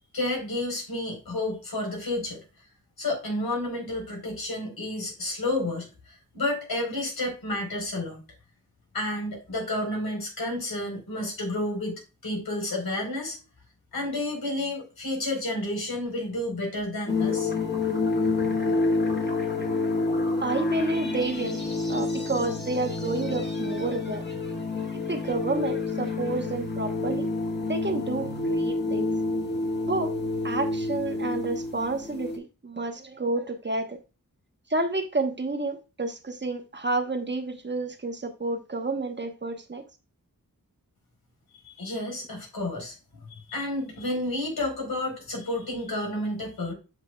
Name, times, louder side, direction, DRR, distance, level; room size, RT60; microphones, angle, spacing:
voice 1, 0.1-2.4 3.0-8.2 8.9-13.4 13.9-17.5 41.6-46.7, left 1 dB, 90° left, 4.1 m, -31 dB
sound 1, 17.1-32.4, left 3 dB, 30° left, 1.6 m, -28 dB
voice 2, 20.4-21.6 21.9-24.2 24.9-27.3 27.6-29.1 29.9-30.2 30.4-34.0 34.7-39.8, right 3 dB, 30° right, 1.0 m, -30 dB
8.0 x 5.8 x 2.3 m
wide cardioid pair, 110°, 35 cm